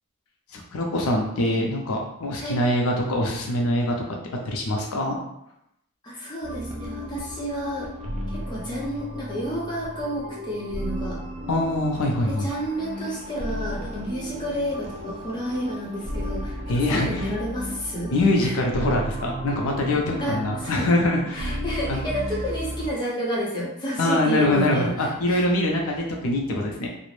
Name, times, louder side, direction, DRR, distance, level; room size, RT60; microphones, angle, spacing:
voice 1, 0.5-4.2 4.5-5.2 11.5-12.5 16.7-17.3 18.1-21.6 21.9-22.0 24.0-26.9, left 1 dB, 75° left, 0 dB, 0.5 m, -24 dB
voice 2, 6.0-7.9 8.3-11.2 12.3-18.1 18.4-18.6 20.2-20.9 21.3-25.5, equal, 20° left, -5 dB, 0.6 m, -30 dB
sound 1, 6.4-22.9, equal, 30° right, 0.4 m, -34 dB
2.4 x 2.0 x 3.1 m, 0.80 s
head